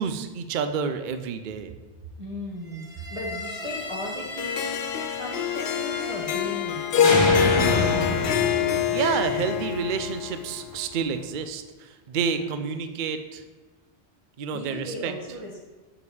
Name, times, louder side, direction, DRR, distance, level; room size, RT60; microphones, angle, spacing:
voice 1, 0.0-1.7 8.9-13.4 14.4-15.1, right 6 dB, 55° right, 9 dB, 0.6 m, -29 dB
voice 2, 2.2-4.8 5.1-7.9 12.3-12.5 14.5-15.7, equal, 30° right, -4 dB, 1.2 m, -36 dB
sound 1, 2.9-6.7 7.0-10.1, left 1 dB, 25° left, 1.2 m, -30 dB
Harp, 4.4-10.7, left 8 dB, 65° left, 0.7 m, -25 dB
7.0 x 5.0 x 4.8 m, 1.3 s
omnidirectional pair, 1.2 m